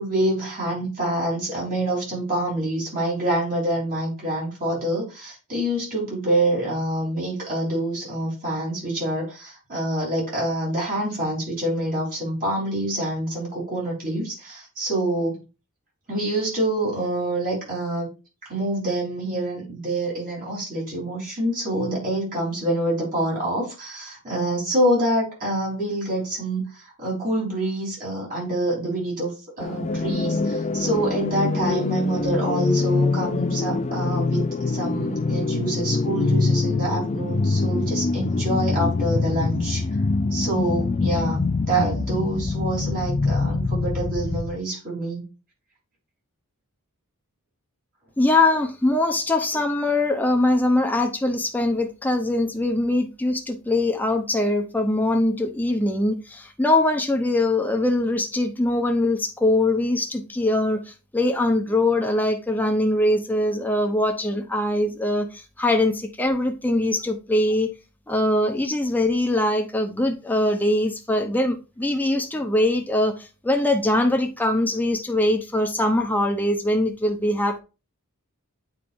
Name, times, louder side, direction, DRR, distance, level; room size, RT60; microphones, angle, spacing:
voice 1, 0.0-15.4 16.1-18.1 18.5-39.8 40.3-45.2, right 1 dB, 40° right, 3.8 m, -26 dB
sound 1, 29.6-44.6, left 3 dB, 30° left, 0.4 m, -24 dB
voice 2, 48.2-67.7 68.1-77.6, left 1 dB, 10° left, 0.7 m, -22 dB
8.8 x 4.8 x 2.6 m
head